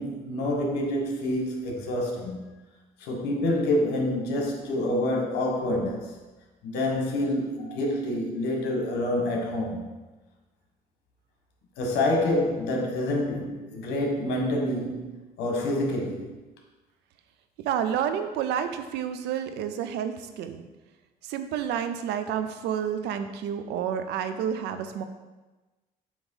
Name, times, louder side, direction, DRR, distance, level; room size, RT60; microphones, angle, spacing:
voice 1, 0.0-2.5 3.0-6.2 6.6-9.8 11.8-15.1 15.4-16.3, left 1 dB, 85° left, 1 dB, 1.5 m, -27 dB
voice 2, 17.6-20.6 21.2-25.0, right 8 dB, 85° right, 9 dB, 0.6 m, -30 dB
7.2 x 3.0 x 5.5 m, 1.2 s
cardioid pair, 110°, 17 cm